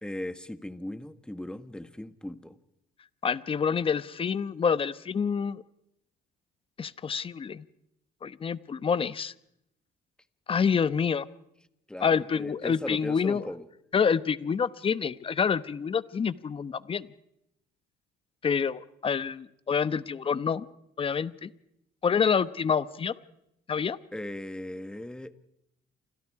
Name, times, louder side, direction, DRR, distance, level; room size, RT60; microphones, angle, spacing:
voice 1, 0.0-2.6 11.9-13.7 24.1-25.3, left 1 dB, 5° left, 11 dB, 1.4 m, -38 dB
voice 2, 3.2-5.6 6.8-7.6 8.2-9.3 10.5-11.3 12.0-13.4 13.9-17.1 18.4-20.7 21.0-21.5 22.0-23.1 23.7-24.0, left 6 dB, 30° left, 15 dB, 1.0 m, -27 dB
29.0 x 26.0 x 4.8 m, 0.80 s
cardioid pair, 110°, 17 cm